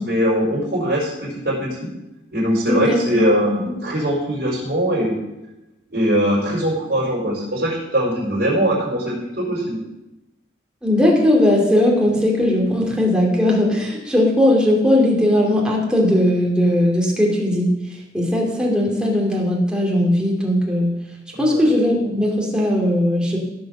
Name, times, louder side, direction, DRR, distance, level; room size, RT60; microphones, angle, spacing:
voice 1, 0.0-1.9 2.3-3.5 3.8-5.2 5.9-9.8 21.3-21.7, equal, 55° right, -6 dB, 4.6 m, -21 dB
voice 2, 2.7-3.2 3.5-3.6 10.8-17.7 18.1-20.9 21.4-23.4, left 1 dB, 5° right, -2 dB, 2.5 m, -18 dB
15.5 x 5.5 x 6.5 m, 0.99 s
head